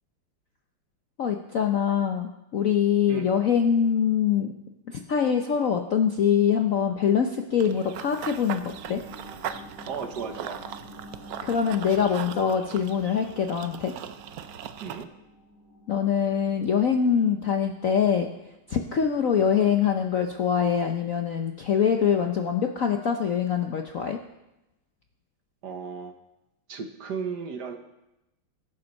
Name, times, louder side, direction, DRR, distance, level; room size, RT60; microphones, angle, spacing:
voice 1, 1.2-4.5 5.1-9.0 11.4-13.9 15.9-18.3 18.7-24.2, left 7 dB, 60° left, 4 dB, 0.8 m, -24 dB
sound 1, 7.5-18.6 19.0-19.1, equal, 35° right, 3.4 m, -49 dB
Run / Bird vocalization bird call bird song, 7.6-15.0, right 9 dB, 80° right, 0.8 m, -39 dB
voice 2, 9.8-10.7 14.8-15.1 25.6-26.1 26.7-27.8, right 6 dB, 60° right, 6 dB, 1.4 m, -35 dB
21.0 x 7.3 x 5.4 m, 0.93 s
omnidirectional pair, 2.3 m